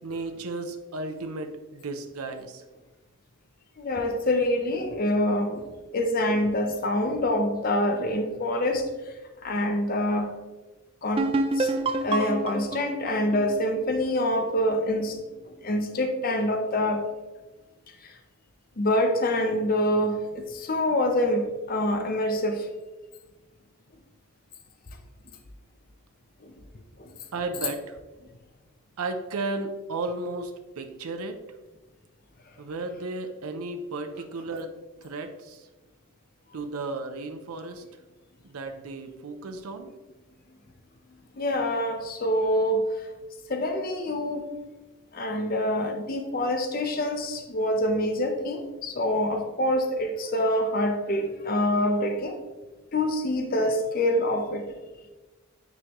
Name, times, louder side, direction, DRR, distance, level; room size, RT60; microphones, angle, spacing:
voice 1, 0.0-2.6 27.3-28.0 29.0-31.4 32.6-34.7 35.0-35.7 36.5-37.8 38.4-39.9, right 3 dB, 85° right, 6 dB, 0.6 m, -34 dB
voice 2, 3.8-8.9 9.4-10.4 11.0-15.2 15.5-17.1 18.0-18.1 18.8-22.7 26.4-26.5 27.0-27.1 41.4-42.8 43.5-44.5 45.1-52.4 52.9-54.7, left 1 dB, 40° left, 5 dB, 0.6 m, -26 dB
sound 1, 11.2-14.7, right 2 dB, 25° right, 0.3 m, -28 dB
9.2 x 3.7 x 3.0 m, 1.2 s
head